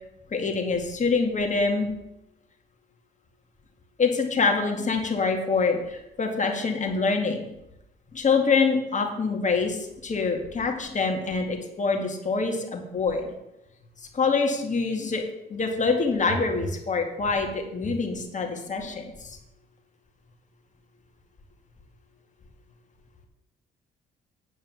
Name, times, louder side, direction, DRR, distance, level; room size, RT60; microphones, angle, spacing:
voice 1, 0.3-1.9 4.0-7.5 8.1-13.3 14.1-15.2 15.5-19.4, left 4 dB, 40° left, 2 dB, 2.2 m, -25 dB
9.3 x 5.4 x 7.4 m, 0.88 s
cardioid pair, 90°, 20 cm